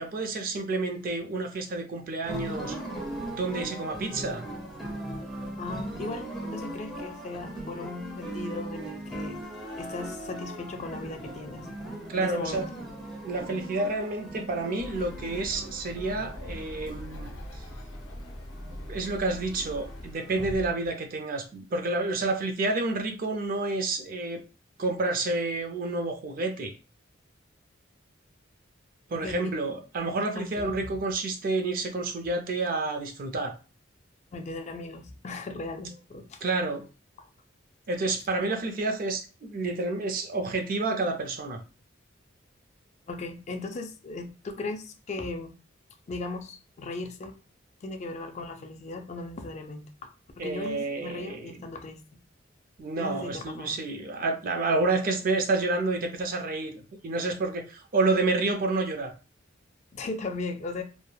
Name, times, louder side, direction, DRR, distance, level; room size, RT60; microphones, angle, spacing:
voice 1, 0.0-2.8 3.3-4.4 12.1-12.7 13.2-17.3 17.5-17.6 18.9-24.4 24.8-26.7 29.1-33.5 36.4-36.8 37.9-41.6 50.4-51.6 52.8-59.1, right 3 dB, 45° right, 5 dB, 0.4 m, -29 dB
sound 1, 2.2-20.6, right 1 dB, ahead, 0.7 m, -39 dB
voice 2, 5.6-9.4 9.7-11.7 12.1-12.7 20.4-20.6 29.1-29.6 30.3-30.8 34.3-36.4 43.1-45.5 46.1-47.4 47.8-50.1 50.4-52.0 53.0-53.8 59.9-60.8, left 3 dB, 35° left, 5 dB, 0.4 m, -37 dB
Bird, 14.7-20.2, left 1 dB, 80° left, 0.6 m, -42 dB
3.0 x 2.1 x 2.2 m, 0.33 s
head